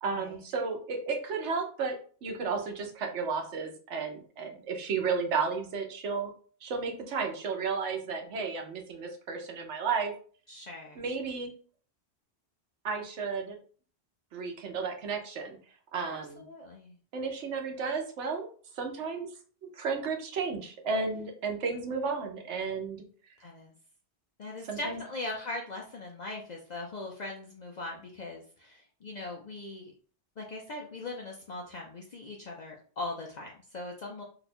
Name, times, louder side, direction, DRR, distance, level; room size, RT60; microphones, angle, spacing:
voice 1, 0.0-1.9 2.2-6.3 6.6-10.1 11.0-11.5 12.8-13.6 14.3-15.6 15.9-16.4 17.1-18.4 18.8-19.3 19.8-23.0 24.7-25.0, right 5 dB, 90° right, 3 dB, 1.0 m, -33 dB
voice 2, 10.5-11.0 16.1-16.9 23.4-23.7 24.4-29.9 30.4-34.2, left 2 dB, 55° left, 0 dB, 0.5 m, -40 dB
2.9 x 2.3 x 4.1 m, 0.43 s
omnidirectional pair, 1.1 m